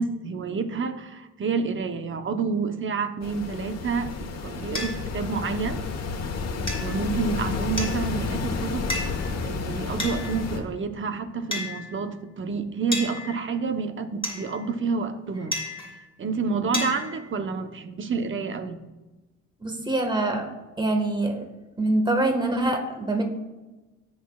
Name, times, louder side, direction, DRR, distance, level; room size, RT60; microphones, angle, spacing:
voice 1, 0.0-5.8 6.8-8.9 9.4-15.6 16.2-18.8, right 4 dB, 40° right, 8 dB, 0.9 m, -29 dB
sound 1, 3.2-10.6, left 4 dB, 55° left, 1.3 m, -31 dB
sound 2, 4.7-4.9 6.7-7.0 7.8-8.2 8.9-9.3 10.0-10.6 11.5-12.1 12.9-13.7 14.2-14.8 15.5-16.1 16.7-17.3, left 2 dB, 15° left, 3.4 m, -33 dB
voice 2, 19.6-20.5 20.8-21.4 21.8-23.2, right 2 dB, 15° right, 4 dB, 1.6 m, -24 dB
17.5 x 6.4 x 2.4 m, 1.1 s
cardioid pair, 90°, 30 cm